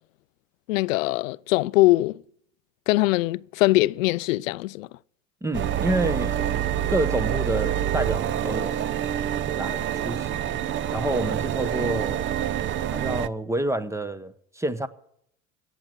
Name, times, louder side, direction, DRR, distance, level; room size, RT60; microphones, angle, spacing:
voice 1, 0.7-2.2 2.9-4.9, left 19 dB, 80° left, 0.5 m, -22 dB
voice 2, 5.4-6.4 6.9-8.8 9.5-10.4 10.9-12.2 12.9-14.9, right 1 dB, 5° right, 0.9 m, -28 dB
sound 1, 5.5-13.3, right 10 dB, 30° right, 0.6 m, -27 dB
16.5 x 7.9 x 8.9 m
hypercardioid pair, 95°, 39 cm